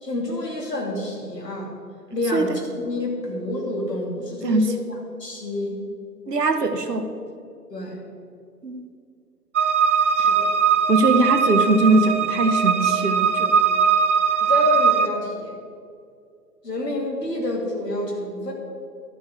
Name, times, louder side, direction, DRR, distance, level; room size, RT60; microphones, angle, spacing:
voice 1, 0.0-1.7 2.1-5.8 7.7-8.0 10.1-10.5 14.4-15.5 16.6-18.5, left 2 dB, 75° left, -1 dB, 2.9 m, -28 dB
voice 2, 4.4-4.7 6.3-7.1 8.6-8.8 10.2-10.3 10.9-13.6, right 2 dB, 70° right, 8 dB, 1.1 m, -21 dB
sound 1, 9.5-15.1, right 6 dB, 45° right, 0.7 m, -20 dB
12.0 x 4.9 x 7.8 m, 2.3 s
figure-of-eight pair, 135°, 49 cm